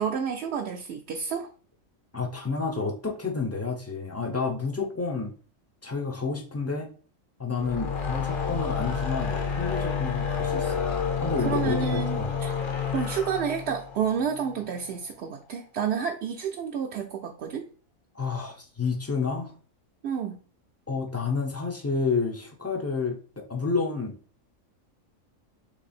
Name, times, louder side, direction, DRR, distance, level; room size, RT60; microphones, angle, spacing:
voice 1, 0.0-1.5 11.4-12.5 12.9-17.7 20.0-20.4, right 7 dB, 65° right, 1 dB, 0.7 m, -30 dB
voice 2, 2.1-5.3 5.8-6.9 7.4-10.9 11.2-12.4 18.1-19.5 20.9-24.1, left 4 dB, 20° left, 1 dB, 0.3 m, -30 dB
sound 1, 7.5-14.9, left 6 dB, 50° left, 0.7 m, -29 dB
3.4 x 3.3 x 4.1 m, 0.40 s
omnidirectional pair, 1.4 m